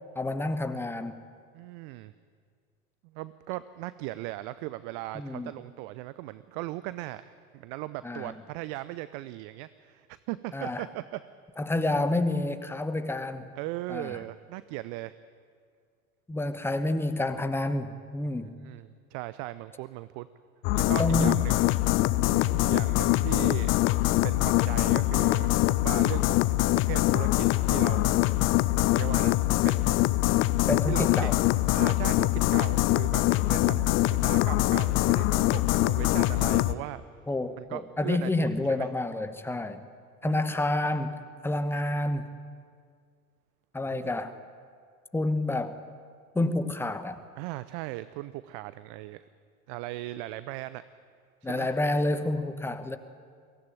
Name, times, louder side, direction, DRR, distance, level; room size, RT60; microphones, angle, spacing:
voice 1, 0.1-1.2 5.1-5.5 8.0-8.3 10.5-10.8 11.6-13.5 13.9-14.2 16.3-18.5 21.0-21.4 30.7-31.3 33.7-33.9 37.3-39.8 40.2-41.2 41.4-42.3 43.7-44.4 45.1-45.8 46.3-47.2 51.4-53.0, left 2 dB, 5° left, 10 dB, 1.1 m, -29 dB
voice 2, 1.5-2.1 3.0-11.2 13.6-15.2 18.3-20.3 20.7-21.6 22.6-23.7 24.2-26.6 26.8-28.2 28.9-29.4 29.6-30.0 30.9-31.3 31.7-33.8 34.1-37.0 37.6-38.9 40.2-40.4 43.9-44.4 47.4-49.2 49.7-50.8 51.4-51.7, right 17 dB, 40° right, 15 dB, 0.6 m, -38 dB
sound 1, 20.6-36.7, left 17 dB, 30° left, 0.5 m, -24 dB
23.0 x 16.5 x 9.0 m, 2.1 s
figure-of-eight pair, 80°, 44 cm